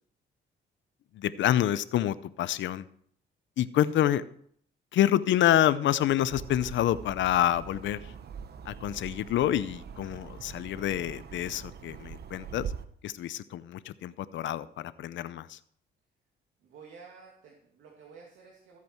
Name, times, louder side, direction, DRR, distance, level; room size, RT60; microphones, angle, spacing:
voice 1, 1.2-2.8 3.6-4.2 4.9-8.0 8.7-12.7 13.0-15.6, left 12 dB, 70° left, 15 dB, 0.7 m, -27 dB
sound 1, 6.3-12.9, right 7 dB, 55° right, 1.0 m, -43 dB
voice 2, 16.6-18.8, right 5 dB, 80° right, -2 dB, 2.4 m, -51 dB
14.0 x 8.4 x 4.6 m, 0.64 s
cardioid pair, 90°, 20 cm